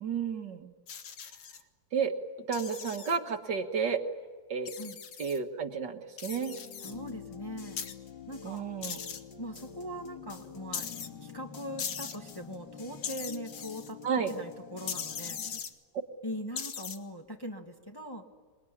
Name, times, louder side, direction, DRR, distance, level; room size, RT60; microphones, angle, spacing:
voice 1, 0.0-0.7 1.9-2.1 2.5-4.0 4.5-4.7 5.2-6.6 8.4-9.0 14.0-14.3, right 6 dB, 60° right, 5 dB, 2.1 m, -31 dB
sound 1, 0.9-1.6 2.5-3.2 4.7-5.4 6.2-6.9 7.8-7.9 8.8-9.2 10.7-11.1 11.8-12.2 13.0-13.9 14.9-15.7 16.6-17.0, left 7 dB, 90° left, 2.3 m, -39 dB
sound 2, 6.3-15.6, left 7 dB, 60° left, 2.2 m, -47 dB
voice 2, 6.8-7.8 8.3-8.6 9.4-10.9 11.2-14.0 14.3-15.4 16.2-18.3, equal, 10° left, 2 dB, 1.6 m, -41 dB
27.5 x 21.5 x 10.0 m, 1.5 s
omnidirectional pair, 2.2 m